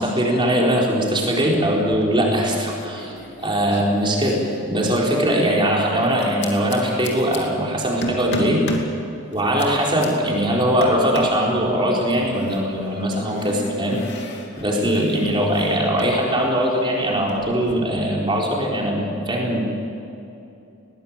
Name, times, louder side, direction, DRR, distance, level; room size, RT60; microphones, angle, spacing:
voice 1, 0.0-3.2 3.4-8.7 9.3-14.0 14.6-19.7, equal, 20° right, -2 dB, 4.4 m, -21 dB
sound 1, 1.8-2.3 2.6-5.2 6.2-7.4 8.0-8.9 9.3-10.1 10.8-11.4 12.2-16.2 16.4-17.7, left 1 dB, 50° left, 2.7 m, -34 dB
20.5 x 18.5 x 8.9 m, 2.8 s
head